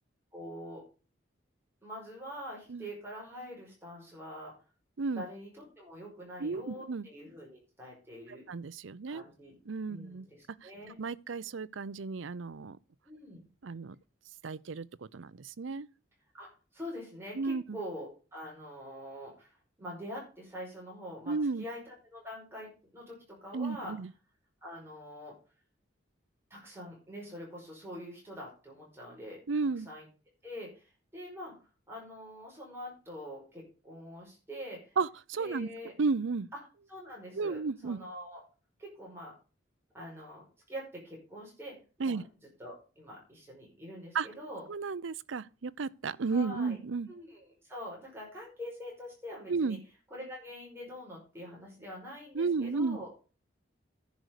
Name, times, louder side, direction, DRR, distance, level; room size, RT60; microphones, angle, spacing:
voice 1, 0.3-0.8 1.8-4.5 5.1-8.4 9.1-9.5 9.9-11.0 13.0-13.4 16.3-23.9 24.6-25.3 26.5-29.4 29.9-30.1 30.4-31.5 31.9-34.9 35.4-35.9 36.9-38.4 38.8-39.3 39.9-42.2 42.6-44.7 46.3-46.8 47.1-49.8 50.1-53.1, equal, 10° right, 5.2 m, -45 dB
voice 2, 6.4-7.1 8.3-9.2 9.7-10.3 10.6-10.7 11.0-12.8 13.6-14.0 14.4-15.9 17.4-17.8 21.3-21.6 23.5-24.1 29.5-29.9 35.0-35.7 36.0-36.5 37.3-38.0 42.0-42.2 44.1-44.3 44.7-47.1 49.5-49.8 52.3-53.0, right 4 dB, 80° right, 0.6 m, -33 dB
10.5 x 6.2 x 6.6 m
head